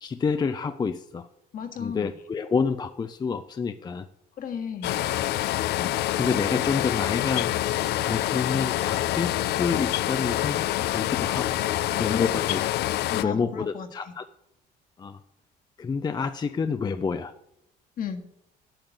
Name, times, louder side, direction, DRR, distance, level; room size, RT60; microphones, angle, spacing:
voice 1, 0.0-1.3 1.8-4.1 5.8-11.5 12.0-12.7 13.2-14.3 15.0-15.2 15.8-17.3, left 5 dB, 25° left, 10 dB, 0.5 m, -29 dB
voice 2, 1.5-2.1 4.4-5.1 11.9-12.3 13.1-13.9 18.0-18.3, left 7 dB, 55° left, 4 dB, 1.8 m, -33 dB
sound 1, 4.8-13.2, left 14 dB, 75° left, 0.5 m, -26 dB
8.9 x 7.8 x 7.9 m, 0.81 s
cardioid pair, 110°, 17 cm